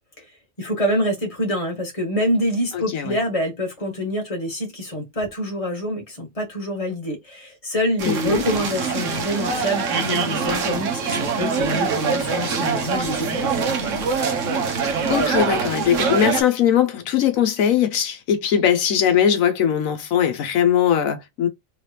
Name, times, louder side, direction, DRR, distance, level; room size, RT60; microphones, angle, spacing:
voice 1, 0.6-13.7, equal, 25° left, 1.6 m, -26 dB
voice 2, 2.7-3.2 8.1-8.4 12.8-13.1 15.1-21.5, left 9 dB, 90° left, 1.1 m, -20 dB
sound 1, 8.0-16.4, right 5 dB, 70° right, 1.2 m, -24 dB
3.5 x 3.3 x 2.8 m
omnidirectional pair, 1.4 m